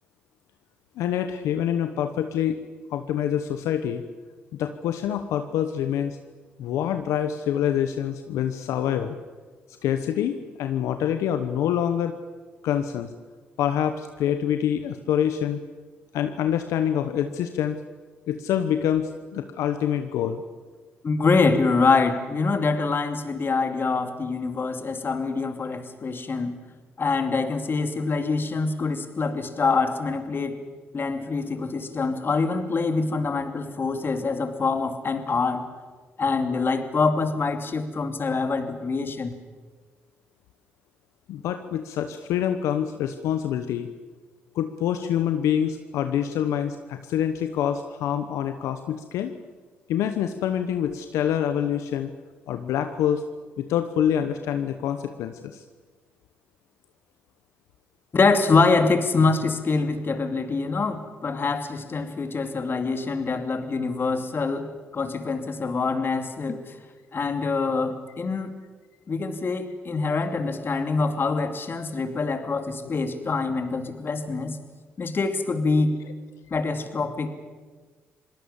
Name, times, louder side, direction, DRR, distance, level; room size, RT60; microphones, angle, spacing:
voice 1, 1.0-2.6 2.9-4.0 4.5-6.2 6.6-9.2 9.8-12.2 12.6-13.1 13.6-15.6 16.1-17.8 18.3-20.4 41.3-43.9 44.5-49.3 49.9-52.1 52.5-53.2 53.6-55.6, left 9 dB, 80° left, 8 dB, 1.0 m, -26 dB
voice 2, 21.0-26.5 27.0-30.6 30.9-35.7 36.2-39.3 58.1-66.8 67.1-68.5 69.1-74.6 75.0-76.0 76.5-77.3, left 4 dB, 45° left, 7 dB, 2.7 m, -25 dB
27.0 x 18.0 x 7.2 m, 1.4 s
supercardioid pair, 55°, 5 cm